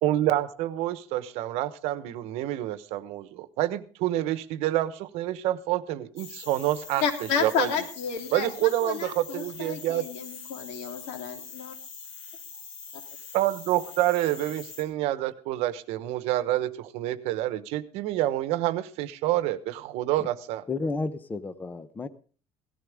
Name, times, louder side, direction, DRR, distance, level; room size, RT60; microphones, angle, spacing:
voice 1, 0.0-7.0 7.4-7.7 8.3-10.0 13.3-20.6, right 14 dB, 70° right, 14 dB, 1.1 m, -27 dB
sound 1, 6.2-14.8, left 5 dB, 60° left, 4.6 m, -43 dB
voice 2, 7.0-11.7 12.9-13.0, left 6 dB, 85° left, 4 dB, 3.2 m, -31 dB
voice 3, 20.7-22.1, left 3 dB, 15° left, 12 dB, 0.8 m, -32 dB
17.5 x 14.0 x 3.5 m, 0.39 s
cardioid pair, 150°, 11 cm